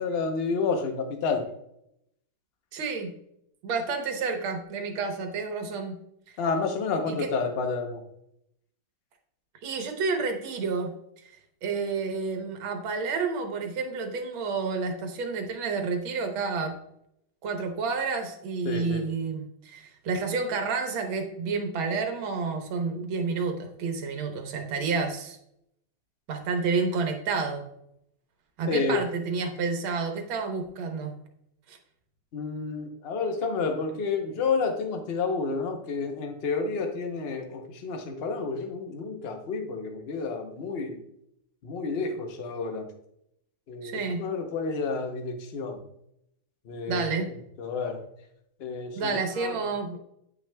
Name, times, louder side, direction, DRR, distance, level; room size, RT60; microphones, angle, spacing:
voice 1, 0.0-1.4 6.4-8.0 18.6-19.0 28.7-29.0 32.3-41.0 41.6-42.9 43.7-45.8 46.7-47.1 47.6-48.0 48.6-49.5, left 4 dB, 90° left, 4 dB, 0.5 m, -30 dB
voice 2, 2.7-3.1 3.6-6.0 7.1-7.3 9.6-11.3 11.6-16.8 17.4-25.4 26.3-27.6 28.6-31.2 31.7-31.8 43.8-44.3 46.9-47.3 49.0-50.0, right 4 dB, 75° right, 5 dB, 1.8 m, -30 dB
9.7 x 5.9 x 2.2 m, 0.76 s
omnidirectional pair, 2.3 m